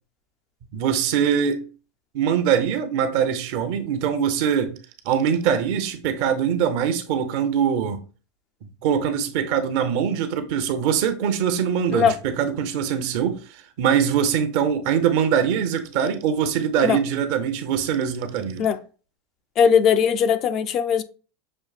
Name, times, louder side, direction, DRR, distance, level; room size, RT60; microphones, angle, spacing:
voice 1, 0.7-1.6 2.1-4.7 5.0-8.0 8.8-18.7, right 8 dB, 60° right, 0.6 m, -23 dB
voice 2, 19.6-21.0, left 7 dB, 40° left, 0.3 m, -19 dB
6.1 x 2.6 x 2.3 m
supercardioid pair, 135°, 0 cm